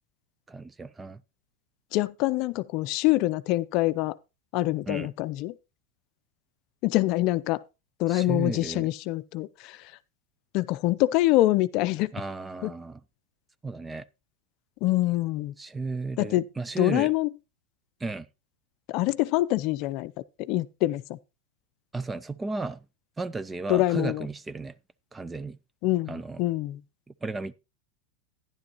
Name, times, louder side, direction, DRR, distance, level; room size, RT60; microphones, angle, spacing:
voice 1, 0.5-1.2 4.9-5.1 8.1-8.9 12.1-13.0 13.6-14.0 15.6-17.1 18.0-18.3 21.9-22.8 23.2-24.7 25.1-25.6 26.1-26.4 27.2-27.5, right 3 dB, 15° right, 0.5 m, -34 dB
voice 2, 1.9-4.2 4.5-5.5 6.8-7.6 8.0-9.9 10.5-12.1 12.6-12.7 14.8-15.5 16.2-16.5 16.8-17.3 18.9-20.1 20.4-21.2 23.7-24.3 25.8-26.8, left 17 dB, 55° left, 0.5 m, -25 dB
12.0 x 10.5 x 2.9 m
hypercardioid pair, 105°, 0 cm